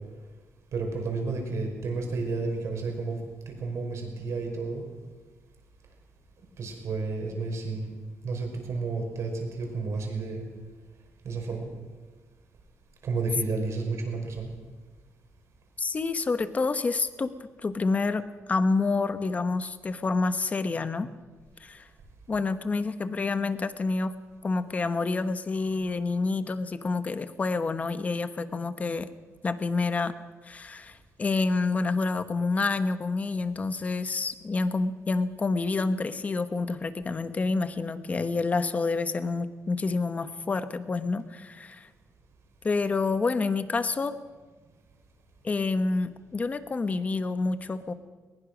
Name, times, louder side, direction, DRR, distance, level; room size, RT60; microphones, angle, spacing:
voice 1, 0.7-3.2 3.5-4.8 6.6-7.8 8.2-10.5 11.2-11.6 13.0-14.5, right 3 dB, 65° right, 2 dB, 5.3 m, -31 dB
voice 2, 15.8-17.3 17.6-21.1 21.6-21.9 22.3-24.1 24.4-29.1 29.4-30.1 30.4-41.9 42.6-44.2 45.4-47.9, left 3 dB, 30° left, 11 dB, 1.0 m, -28 dB
20.5 x 20.5 x 6.2 m, 1.4 s
wide cardioid pair, 150°, 5 cm